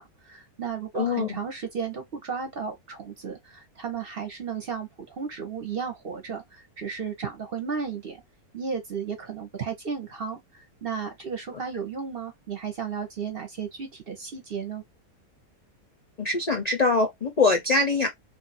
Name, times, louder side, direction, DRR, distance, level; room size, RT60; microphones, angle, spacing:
voice 1, 0.0-8.2 8.5-14.8, right 6 dB, 50° right, 0.8 m, -34 dB
voice 2, 0.9-1.4 16.2-18.2, left 3 dB, 60° left, 0.4 m, -23 dB
2.6 x 2.5 x 4.0 m
omnidirectional pair, 1.7 m